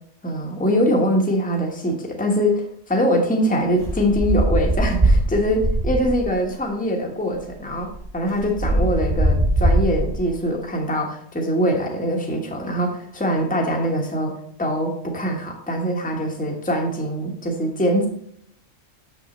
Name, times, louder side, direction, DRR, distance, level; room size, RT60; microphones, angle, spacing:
voice 1, 0.2-18.1, equal, 5° left, 0 dB, 1.2 m, -23 dB
sound 1, 3.8-6.4 7.3-7.4 7.7-10.4, right 1 dB, 30° right, 1.7 m, -21 dB
7.0 x 6.3 x 4.2 m, 0.67 s
omnidirectional pair, 1.3 m